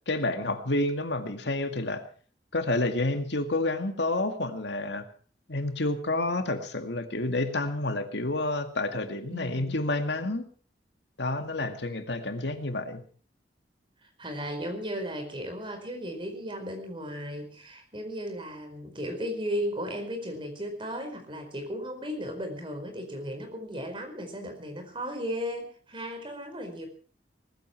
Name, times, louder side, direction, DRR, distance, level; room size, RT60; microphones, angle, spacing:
voice 1, 0.1-2.0 2.5-5.1 5.5-10.4 11.2-13.0, left 2 dB, 75° left, 7 dB, 2.1 m, -29 dB
voice 2, 9.3-9.8 14.0-26.9, equal, 30° right, 4 dB, 4.8 m, -35 dB
19.5 x 14.5 x 4.6 m, 0.43 s
head